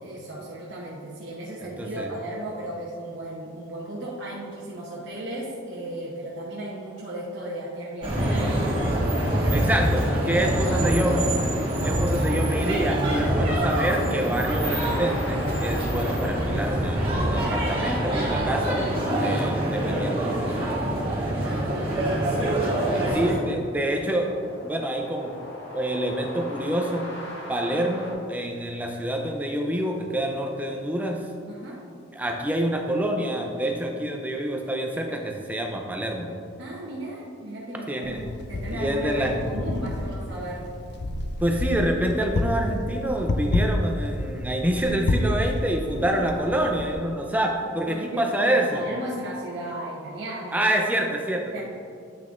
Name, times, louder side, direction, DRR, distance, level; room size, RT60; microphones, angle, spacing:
voice 1, 0.0-9.7 10.2-11.1 13.3-13.6 21.3-22.5 22.9-23.5 31.5-31.8 36.6-38.2 38.5-40.6 45.4-46.2 47.9-50.9 51.5-51.6, right 1 dB, 60° right, -6 dB, 0.9 m, -36 dB
voice 2, 1.8-2.1 9.5-11.3 11.8-18.8 19.2-21.1 23.1-24.3 24.6-25.3 25.7-27.1 27.5-31.3 32.1-36.3 37.9-38.2 38.7-39.4 41.4-48.8 50.5-51.6, right 1 dB, 10° right, 2 dB, 0.5 m, -27 dB
sound 1, 8.0-23.3, right 1 dB, 25° right, 1.4 m, -25 dB
sound 2, 14.6-28.1, left 1 dB, 75° left, 1.5 m, -42 dB
Wind, 38.0-46.9, left 1 dB, 55° left, 0.4 m, -29 dB
8.7 x 5.9 x 2.5 m, 2.4 s
head